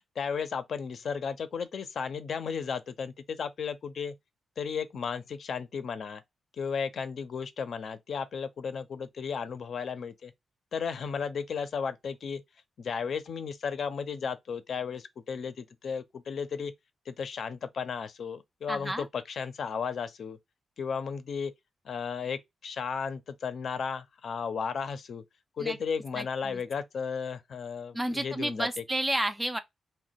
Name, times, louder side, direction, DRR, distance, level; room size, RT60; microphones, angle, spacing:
voice 1, 0.0-4.1 4.6-6.2 6.6-10.3 10.7-12.4 12.8-16.7 17.1-20.4 20.8-21.5 21.8-25.2 25.6-28.8, left 6 dB, 55° left, 0.6 m, -34 dB
voice 2, 18.7-19.1 25.6-25.8 26.1-26.6 27.9-29.6, right 1 dB, 10° right, 0.4 m, -31 dB
3.1 x 2.2 x 4.0 m
wide cardioid pair, 170°, 0 cm